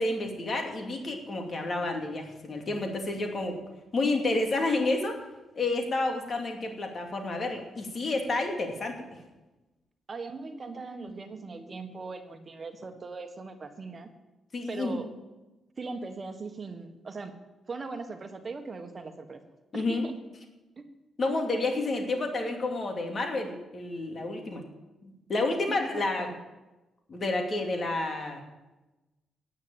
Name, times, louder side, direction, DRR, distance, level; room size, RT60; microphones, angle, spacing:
voice 1, 0.0-3.6 3.9-5.2 5.5-9.2 14.5-15.0 19.7-20.0 21.2-24.6 25.0-26.3 27.1-28.4, left 2 dB, 45° left, 3 dB, 2.6 m, -30 dB
voice 2, 10.1-14.1 14.7-15.1 15.8-17.3 17.7-19.4 19.7-20.1 20.8-20.9 25.7-26.3, right 3 dB, 40° right, 7 dB, 1.4 m, -39 dB
9.4 x 8.9 x 8.8 m, 1.1 s
cardioid pair, 65°, 0 cm